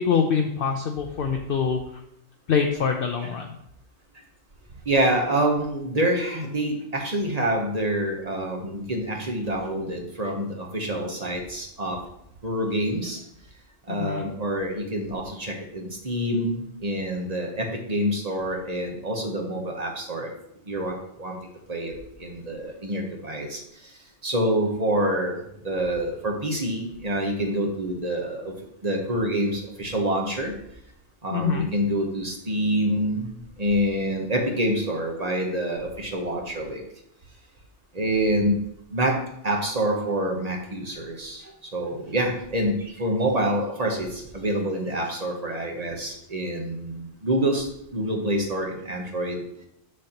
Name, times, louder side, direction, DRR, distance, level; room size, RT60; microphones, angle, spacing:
voice 1, 0.0-1.8 2.5-3.5 13.9-14.2 31.3-31.7, left 6 dB, 60° left, 3 dB, 0.7 m, -24 dB
voice 2, 4.9-12.0 12.4-13.2 13.9-20.3 20.7-21.4 21.7-21.9 22.2-23.6 24.2-25.3 25.6-28.5 28.8-30.5 31.2-36.8 37.9-38.6 38.9-39.2 39.4-49.4, right 1 dB, 35° right, 1 dB, 1.0 m, -26 dB
6.8 x 6.4 x 2.9 m, 0.76 s
omnidirectional pair, 1.2 m